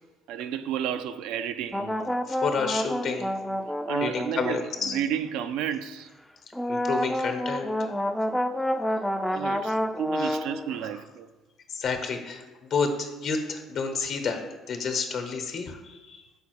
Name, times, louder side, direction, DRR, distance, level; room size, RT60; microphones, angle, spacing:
voice 1, 0.3-2.1 3.9-6.1 9.3-11.3, right 9 dB, 75° right, 0.3 m, -32 dB
sound 1, 1.7-5.1 6.5-10.8, equal, 5° left, 0.4 m, -29 dB
voice 2, 2.3-3.3 4.0-5.0 6.7-7.9 9.3-9.4 10.2-10.4 11.7-14.4 14.7-16.2, left 5 dB, 65° left, 1.0 m, -30 dB
5.5 x 4.2 x 4.6 m
supercardioid pair, 65°, 0 cm